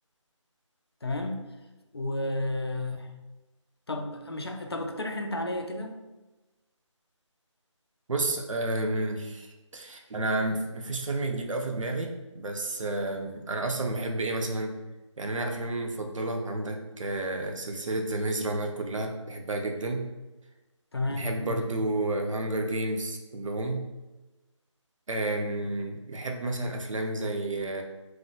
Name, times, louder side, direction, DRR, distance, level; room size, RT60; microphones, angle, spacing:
voice 1, 1.0-1.5 1.9-3.1 3.9-5.9 20.9-21.6, left 2 dB, 50° left, 4 dB, 0.4 m, -32 dB
voice 2, 8.1-14.7 15.2-20.1 21.1-23.8 25.1-27.8, right 2 dB, 75° right, 3 dB, 0.6 m, -31 dB
3.0 x 2.1 x 2.7 m, 1.1 s
figure-of-eight pair, 180°, 16 cm